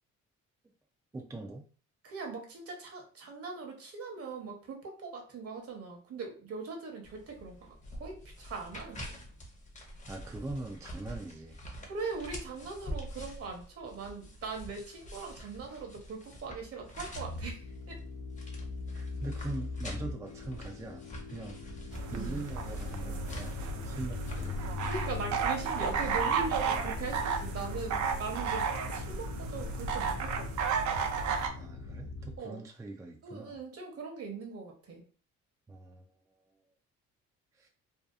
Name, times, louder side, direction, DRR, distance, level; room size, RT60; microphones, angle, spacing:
voice 1, 1.1-1.7 10.1-11.6 18.9-24.9 31.3-33.6 35.7-36.1 37.5-37.7, right 2 dB, 10° right, 2 dB, 0.3 m, -42 dB
voice 2, 2.0-7.7 8.0-9.0 11.8-18.0 22.1-22.4 24.9-30.5 30.9-31.1 32.4-32.6 33.2-35.0, right 4 dB, 50° right, 2 dB, 0.9 m, -40 dB
sound 1, 7.0-26.3, equal, 25° left, 0.7 m, -47 dB
sound 2, 17.1-32.4, left 4 dB, 65° left, 0.5 m, -42 dB
sound 3, 21.9-31.5, right 5 dB, 70° right, 0.5 m, -33 dB
2.7 x 2.2 x 2.3 m, 0.39 s
cardioid pair, 90°, 30 cm